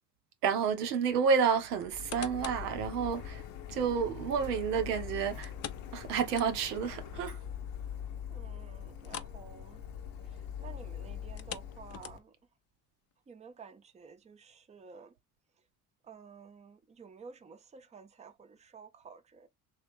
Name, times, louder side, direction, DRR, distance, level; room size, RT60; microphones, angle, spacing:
voice 1, 0.4-3.4 3.7-5.5 5.9-7.4, right 6 dB, 90° right, 0.6 m, -30 dB
Printer, 1.8-12.2, left 8 dB, 65° left, 0.8 m, -43 dB
sound 1, 1.8-2.7 3.2-3.3 5.4-6.9 7.2-7.3 7.8-7.9 9.0-9.4 9.7-9.9 11.2-12.5 13.1-13.2, left 10 dB, 35° left, 0.5 m, -45 dB
voice 2, 8.3-9.8 10.2-12.3 13.3-15.1 16.0-19.5, right 5 dB, 15° right, 0.5 m, -52 dB
3.0 x 2.3 x 3.3 m
hypercardioid pair, 55°, 46 cm